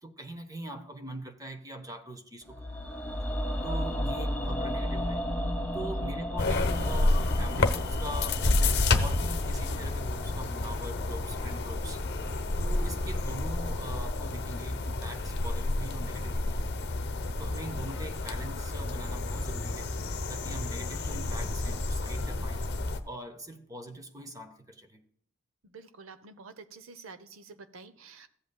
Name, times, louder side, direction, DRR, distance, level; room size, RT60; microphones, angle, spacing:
voice 1, 0.0-2.6 3.6-5.3 5.7-12.0 12.6-16.6 17.4-19.9 20.3-22.7 23.0-25.0, right 1 dB, 15° right, 0.9 m, -42 dB
sound 1, 2.5-12.6 12.9-13.0, equal, 5° left, 1.2 m, -35 dB
sound 2, 6.4-23.0, left 2 dB, 50° left, 0.8 m, -30 dB
voice 2, 25.6-28.3, right 4 dB, 70° right, 0.8 m, -49 dB
14.5 x 8.1 x 2.3 m
head